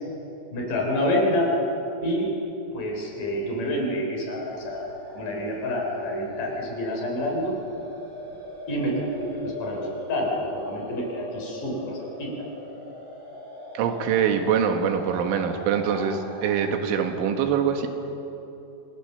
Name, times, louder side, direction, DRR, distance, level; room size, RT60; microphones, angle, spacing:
voice 1, 0.5-1.5 2.0-2.3 2.7-7.6 8.7-12.3, left 1 dB, 50° left, 0 dB, 4.8 m, -28 dB
sound 1, 4.4-16.6, left 1 dB, 5° right, 5.8 m, -41 dB
voice 2, 13.8-17.9, right 7 dB, 85° right, 5 dB, 4.0 m, -24 dB
27.0 x 19.5 x 6.8 m, 3.0 s
omnidirectional pair, 5.4 m